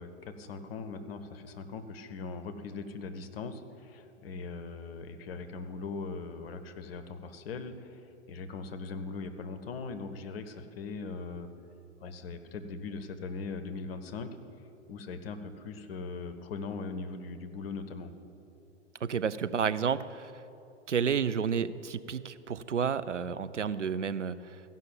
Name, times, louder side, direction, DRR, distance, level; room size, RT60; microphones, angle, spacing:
voice 1, 0.0-11.5 12.0-14.3 14.9-18.1, left 4 dB, 55° left, 8 dB, 1.0 m, -40 dB
voice 2, 19.0-20.3 20.9-24.7, right 7 dB, 90° right, 13 dB, 0.5 m, -31 dB
15.0 x 5.6 x 7.2 m, 2.9 s
figure-of-eight pair, 100°, 35 cm